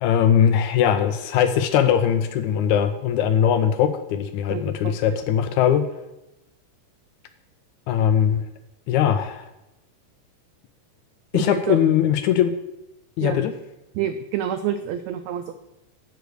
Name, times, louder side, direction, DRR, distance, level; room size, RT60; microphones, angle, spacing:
voice 1, 0.0-5.9 7.9-8.4 8.9-9.5 11.3-12.5 13.2-13.5, left 9 dB, 80° left, 9 dB, 1.8 m, -20 dB
voice 2, 4.5-5.2 11.3-11.8 13.2-13.4 13.9-15.6, right 10 dB, 85° right, 10 dB, 1.5 m, -28 dB
8.0 x 6.7 x 6.3 m, 0.95 s
omnidirectional pair, 3.7 m